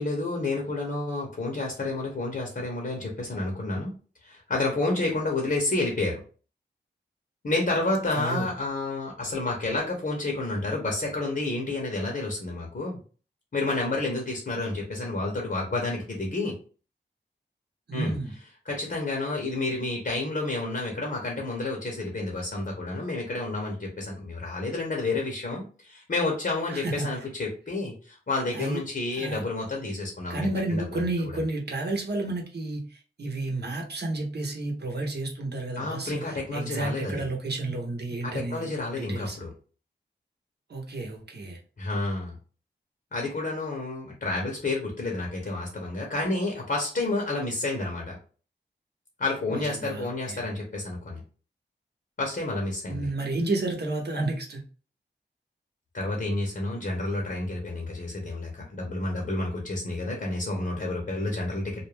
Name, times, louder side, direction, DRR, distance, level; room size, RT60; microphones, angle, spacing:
voice 1, 0.0-3.9 4.2-6.2 7.4-13.0 13.5-16.5 17.9-18.2 18.6-31.0 35.8-37.3 38.2-39.5 41.8-42.3 43.1-48.2 49.2-51.2 52.2-53.1 55.9-61.9, left 2 dB, 55° left, 0 dB, 0.9 m, -30 dB
voice 2, 8.1-8.5 17.9-18.3 26.7-27.1 28.5-28.8 29.2-29.4 30.3-39.4 40.7-41.6 49.5-50.4 52.9-54.6, right 2 dB, 60° right, 1 dB, 0.8 m, -31 dB
2.4 x 2.1 x 3.2 m, 0.39 s
cardioid pair, 40°, 19 cm